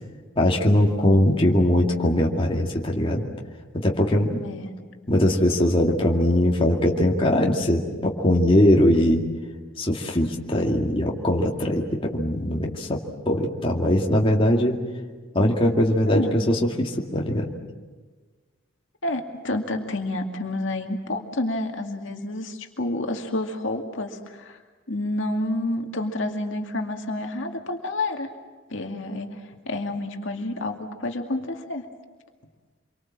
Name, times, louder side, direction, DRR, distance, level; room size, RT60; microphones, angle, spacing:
voice 1, 0.4-3.2 3.7-4.4 5.1-9.2 9.8-13.0 13.3-14.8 15.3-17.5, left 1 dB, 25° left, -1 dB, 2.3 m, -21 dB
voice 2, 4.4-4.7 16.1-16.4 19.0-24.6 24.9-28.3 28.7-31.8, left 2 dB, 65° left, 3 dB, 2.3 m, -29 dB
27.0 x 24.0 x 7.5 m, 1.4 s
head